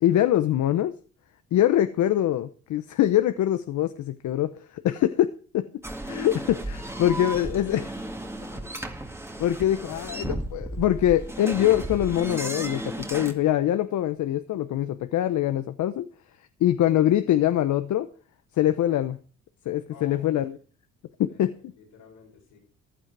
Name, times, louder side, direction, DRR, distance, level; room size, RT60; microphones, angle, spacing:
voice 1, 0.0-0.9 1.5-5.7 6.1-7.8 9.4-16.1 16.6-18.1 18.6-19.2 19.7-20.6 21.2-21.5, left 12 dB, 75° left, 0.9 m, -23 dB
sound 1, 5.8-13.3, right 1 dB, 10° right, 1.9 m, -34 dB
voice 2, 6.9-8.7 11.7-11.8 19.9-20.3 21.3-21.4 21.7-22.6, left 6 dB, 90° left, 5.8 m, -50 dB
15.0 x 11.0 x 4.7 m
cardioid pair, 90°, 30 cm